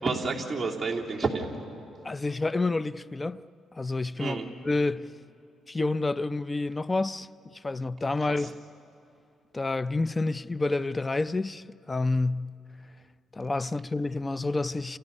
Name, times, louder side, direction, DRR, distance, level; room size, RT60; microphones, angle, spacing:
voice 1, 0.0-1.5 4.2-4.5 8.3-8.5, right 4 dB, 20° right, 3.1 m, -30 dB
voice 2, 2.0-3.4 3.8-4.4 4.6-5.1 5.7-7.3 7.6-8.5 9.5-12.5 13.3-15.0, left 3 dB, 20° left, 0.6 m, -28 dB
29.5 x 29.5 x 5.5 m
cardioid pair, 90°, 0 cm